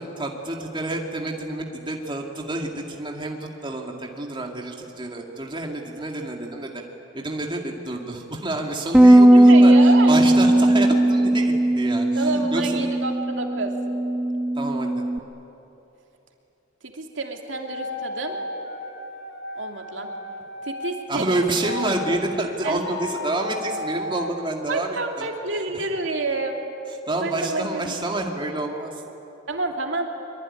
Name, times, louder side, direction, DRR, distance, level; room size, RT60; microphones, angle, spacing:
voice 1, 0.0-6.8 7.1-9.7 10.1-12.8 14.6-15.0 21.1-25.3 25.7-25.9 27.1-29.0, right 2 dB, 25° right, 1 dB, 2.3 m, -28 dB
Bass guitar, 8.9-15.2, right 1 dB, 5° right, 0.8 m, -17 dB
voice 2, 9.3-10.1 12.1-13.7 16.8-18.4 19.5-20.1 20.6-21.4 22.6-22.8 24.7-26.6 27.2-27.9 29.5-30.1, right 3 dB, 70° right, 2 dB, 2.8 m, -28 dB
sound 1, 17.5-20.9 21.6-22.2 22.7-24.3, left 3 dB, 65° left, 3.3 m, -34 dB
24.0 x 24.0 x 10.0 m, 3.0 s
head